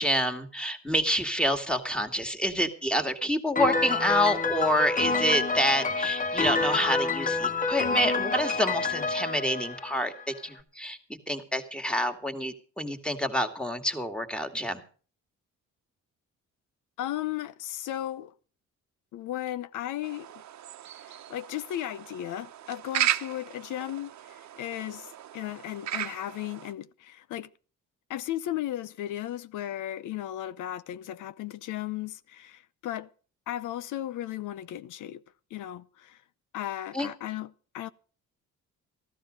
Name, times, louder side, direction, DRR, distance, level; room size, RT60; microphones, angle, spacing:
voice 1, 0.0-14.8 36.9-37.1, equal, 5° left, 2.3 m, -28 dB
Piano, 3.6-10.4, left 4 dB, 25° left, 1.5 m, -28 dB
voice 2, 17.0-18.3 19.1-20.3 21.3-24.1 24.6-27.5 28.1-33.1 33.5-35.2 35.5-36.2 36.5-37.9, left 13 dB, 85° left, 0.7 m, -35 dB
sound 1, 20.0-26.7, right 12 dB, 65° right, 1.0 m, -35 dB
14.5 x 13.0 x 5.2 m
cardioid pair, 90°, 30 cm